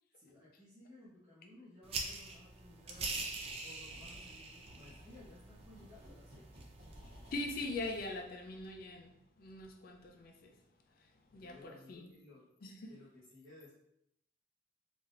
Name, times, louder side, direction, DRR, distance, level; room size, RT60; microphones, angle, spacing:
voice 1, 0.1-3.1 3.6-6.4 11.3-12.5 12.9-13.7, left 2 dB, 5° right, 0.9 m, -58 dB
sound 1, 1.8-8.0, right 3 dB, 30° right, 0.3 m, -45 dB
sound 2, 2.9-3.6 3.9-7.4, equal, 80° right, 1.2 m, -57 dB
voice 2, 7.3-10.6 10.9-12.1 12.6-12.9, left 2 dB, 50° left, 0.4 m, -43 dB
3.4 x 2.7 x 2.5 m
head